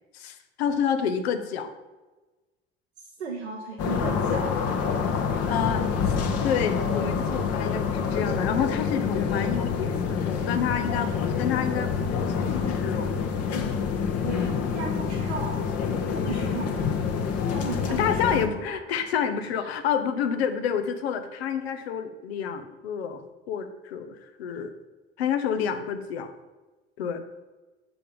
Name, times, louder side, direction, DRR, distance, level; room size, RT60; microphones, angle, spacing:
voice 1, 0.1-1.7 5.5-6.1 6.4-11.1 11.4-12.2 12.5-13.1 18.0-23.2 23.5-24.7 25.2-26.3 27.0-27.2, left 7 dB, 75° left, 9 dB, 1.0 m, -28 dB
voice 2, 3.0-4.6 14.2-15.6 16.1-17.0 17.5-18.4 18.7-18.8 19.3-19.7, right 4 dB, 90° right, -1 dB, 1.0 m, -36 dB
sound 1, 3.8-18.5, left 6 dB, 50° left, 1.3 m, -27 dB
8.3 x 7.2 x 5.3 m, 1.2 s
figure-of-eight pair, 60°, 32 cm